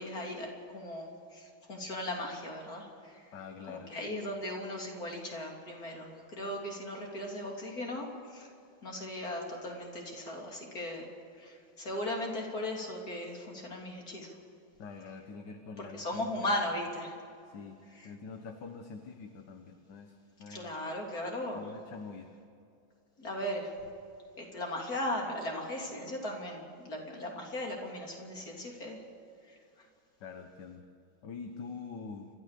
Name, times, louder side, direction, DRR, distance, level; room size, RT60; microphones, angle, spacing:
voice 1, 0.0-3.3 3.7-8.5 8.8-11.1 11.4-14.3 15.8-17.2 20.5-21.6 23.2-23.7 24.4-29.0 29.5-29.6, left 1 dB, 45° left, 0 dB, 3.7 m, -37 dB
voice 2, 3.3-3.9 14.8-16.5 17.5-17.8 18.0-20.7 21.5-22.3 30.2-30.8 31.2-32.3, left 5 dB, 60° left, 5 dB, 1.8 m, -45 dB
29.5 x 13.5 x 6.8 m, 2.5 s
omnidirectional pair, 2.2 m